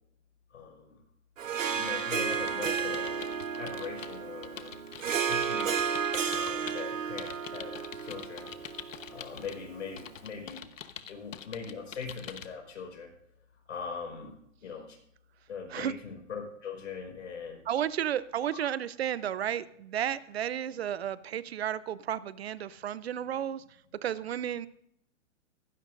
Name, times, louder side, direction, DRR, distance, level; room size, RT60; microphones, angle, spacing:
voice 1, 0.5-1.0 1.7-4.7 5.3-5.7 6.3-8.5 9.1-10.7 11.1-13.1 13.7-14.3 14.6-15.0 15.5-17.6 18.5-18.7, left 5 dB, 65° left, 2 dB, 5.3 m, -41 dB
Harp, 1.4-10.0, right 7 dB, 90° right, 1.4 m, -33 dB
sound 1, 1.6-6.8 7.2-9.6 10.0-12.5, left 8 dB, 90° left, 1.2 m, -45 dB
voice 2, 17.7-23.6 24.0-24.7, right 10 dB, 55° right, 18 dB, 0.6 m, -32 dB
17.0 x 15.5 x 2.6 m, 0.75 s
hypercardioid pair, 160°, 38 cm